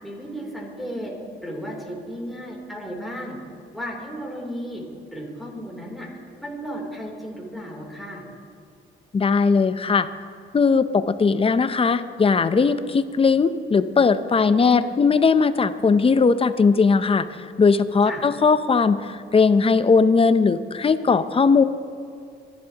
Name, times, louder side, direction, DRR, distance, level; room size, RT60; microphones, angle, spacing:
voice 1, 0.0-1.1 1.4-3.4 3.7-4.8 5.1-6.1 6.4-8.2 14.3-15.0 18.0-18.2, equal, ahead, -3 dB, 3.1 m, -34 dB
voice 2, 9.1-10.1 10.5-21.6, left 5 dB, 30° left, 12 dB, 0.6 m, -19 dB
25.0 x 11.5 x 2.9 m, 2.3 s
cardioid pair, 90°, 20 cm